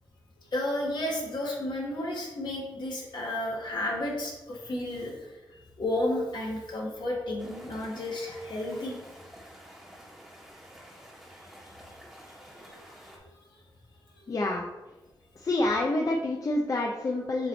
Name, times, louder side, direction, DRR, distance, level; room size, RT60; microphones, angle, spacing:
voice 1, 0.5-9.0 12.4-13.3 14.1-14.3, left 1 dB, 65° left, -3 dB, 1.9 m, -33 dB
sound 1, 7.4-13.2, equal, ahead, 1.3 m, -50 dB
voice 2, 14.3-14.6 15.4-17.5, left 2 dB, 45° left, -1 dB, 0.6 m, -27 dB
7.2 x 3.2 x 4.0 m, 1.1 s
wide cardioid pair, 90°, 8 cm